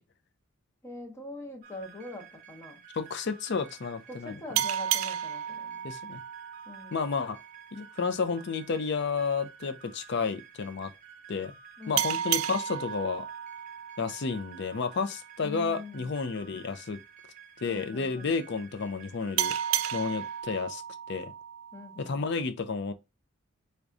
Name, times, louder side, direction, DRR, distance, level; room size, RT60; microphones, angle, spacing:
voice 1, 0.8-2.8 4.1-5.8 6.7-7.0 11.8-12.2 15.4-16.1 17.6-18.4 21.7-22.3, left 2 dB, 15° left, 0.7 m, -43 dB
sound 1, 1.6-20.4, right 7 dB, 40° right, 0.7 m, -52 dB
voice 2, 2.9-4.3 5.8-6.2 6.9-7.4 7.7-10.9 11.3-11.5 11.9-13.3 14.0-17.0 17.6-19.5 19.9-20.8 21.1-21.3 22.0-22.9, left 5 dB, 55° left, 0.5 m, -31 dB
sound 2, 4.6-7.8 12.0-15.2 19.4-22.3, right 11 dB, 80° right, 0.3 m, -33 dB
4.7 x 2.2 x 2.5 m
head